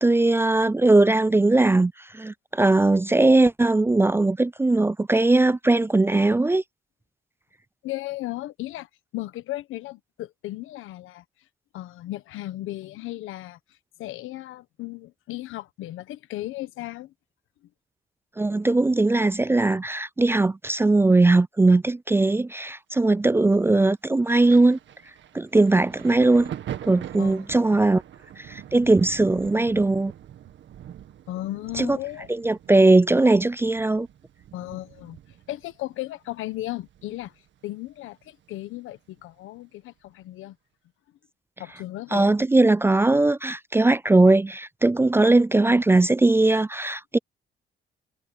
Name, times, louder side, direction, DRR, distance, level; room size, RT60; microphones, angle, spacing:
voice 1, 0.0-6.6 18.4-24.8 25.3-26.5 26.9-28.0 28.4-30.1 31.8-32.0 32.3-34.1 42.1-47.2, right 2 dB, 10° right, 0.3 m, -19 dB
voice 2, 7.8-11.2 11.7-13.6 14.0-17.1 27.2-27.4 31.3-32.3 34.5-35.2 35.5-37.3 37.6-40.6 41.6-42.3, left 16 dB, 90° left, 1.2 m, -35 dB
Thunder, 24.3-37.6 37.9-39.2 40.1-40.2, right 10 dB, 70° right, 1.9 m, -43 dB
cardioid pair, 90°, 20 cm